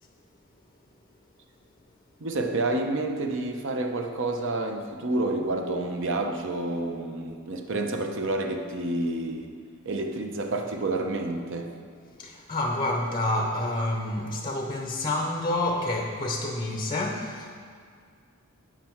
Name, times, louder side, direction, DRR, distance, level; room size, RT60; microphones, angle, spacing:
voice 1, 2.2-9.5 9.8-11.7, right 2 dB, 55° right, 4 dB, 0.8 m, -29 dB
voice 2, 12.2-17.5, left 1 dB, 20° left, 2 dB, 0.6 m, -28 dB
9.5 x 7.5 x 4.5 m, 2.1 s
head